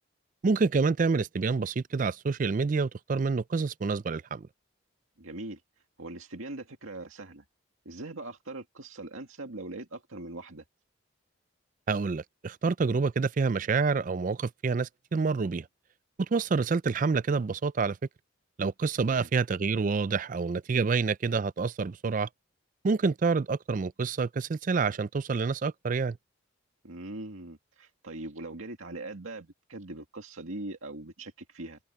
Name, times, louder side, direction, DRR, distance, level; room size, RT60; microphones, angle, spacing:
voice 1, 0.4-4.5 11.9-15.7 16.2-18.0 18.6-22.3 22.8-26.2, right 4 dB, 40° right, 0.4 m, -27 dB
voice 2, 5.2-5.6 6.0-7.4 7.9-10.6 19.0-19.3 26.8-31.8, right 2 dB, 90° right, 2.2 m, -41 dB
head